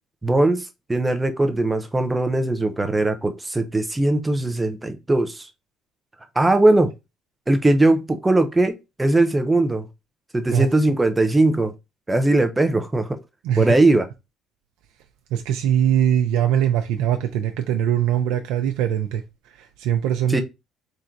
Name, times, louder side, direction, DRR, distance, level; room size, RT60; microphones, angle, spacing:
voice 1, 0.2-5.5 6.4-6.9 7.5-9.9 10.3-11.7 12.1-13.2 13.6-14.1 20.3-20.4, right 2 dB, 10° right, 0.5 m, -20 dB
voice 2, 13.4-13.8 15.3-20.4, right 10 dB, 90° right, 0.5 m, -22 dB
3.6 x 2.6 x 4.4 m
cardioid pair, 160°, 0 cm